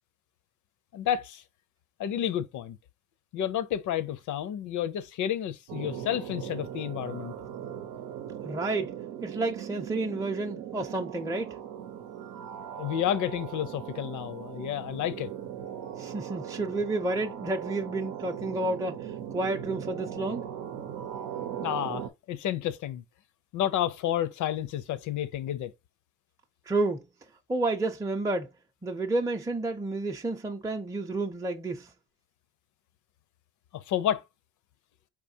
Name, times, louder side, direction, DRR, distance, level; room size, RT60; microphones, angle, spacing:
voice 1, 0.9-1.4 2.0-2.8 3.3-7.3 12.8-15.3 21.6-23.0 23.5-25.7 33.7-34.2, left 11 dB, 75° left, 0.6 m, -30 dB
sound 1, 5.7-22.1, right 9 dB, 90° right, 0.7 m, -39 dB
voice 2, 8.4-9.0 9.2-11.6 16.0-20.5 26.7-27.1 27.5-28.5 28.8-31.9, right 2 dB, 10° right, 0.5 m, -30 dB
4.7 x 3.6 x 2.7 m
cardioid pair, 90°, 30 cm